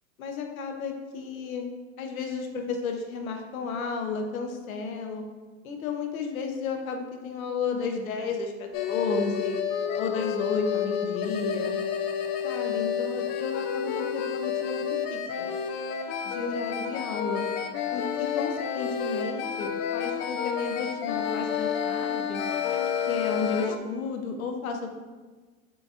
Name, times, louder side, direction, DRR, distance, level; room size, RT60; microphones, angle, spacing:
voice 1, 0.2-1.7 2.0-5.2 5.6-9.6 10.0-11.8 12.4-15.5 16.2-17.5 17.9-22.4 23.0-24.9, left 4 dB, 85° left, 3 dB, 0.8 m, -33 dB
sound 1, 8.7-23.8, left 8 dB, 40° left, 0.4 m, -30 dB
6.1 x 3.5 x 2.4 m, 1.3 s
hypercardioid pair, 110°, 41 cm